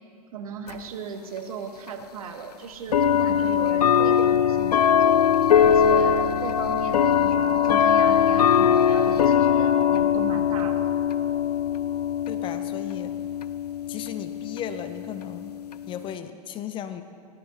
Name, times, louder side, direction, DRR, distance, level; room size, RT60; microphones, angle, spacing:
voice 1, 0.3-5.2 5.7-10.9, right 5 dB, 60° right, 6 dB, 1.2 m, -36 dB
sound 1, 0.7-0.8 1.9-2.0 2.9-16.1, left 8 dB, 75° left, 0.5 m, -21 dB
voice 2, 12.3-13.1 13.9-15.6 15.9-17.0, left 9 dB, 25° left, 10 dB, 0.6 m, -35 dB
17.0 x 12.0 x 2.8 m, 2.2 s
figure-of-eight pair, 100°, 20 cm